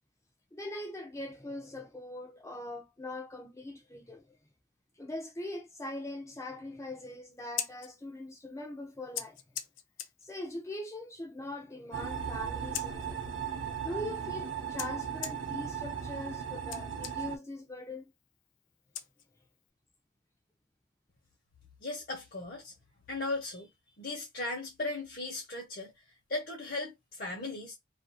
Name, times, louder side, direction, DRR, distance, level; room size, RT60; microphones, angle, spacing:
voice 1, 0.5-4.4 5.0-9.4 10.2-13.2 13.8-18.1, left 1 dB, 15° left, 0.5 m, -41 dB
Scissors, 7.3-19.7, left 10 dB, 75° left, 0.5 m, -46 dB
sound 1, 11.9-17.4, right 8 dB, 75° right, 0.6 m, -37 dB
voice 2, 21.8-22.7 23.1-23.7 24.0-25.9 26.3-27.7, left 2 dB, 50° left, 0.8 m, -37 dB
2.7 x 2.5 x 2.3 m
head